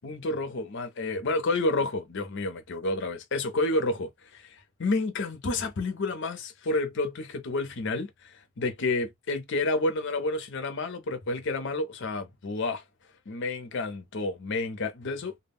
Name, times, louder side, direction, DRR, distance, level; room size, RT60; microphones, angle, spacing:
voice 1, 0.0-12.8 13.3-15.3, left 2 dB, 60° left, 0.6 m, -30 dB
2.1 x 2.1 x 3.4 m
head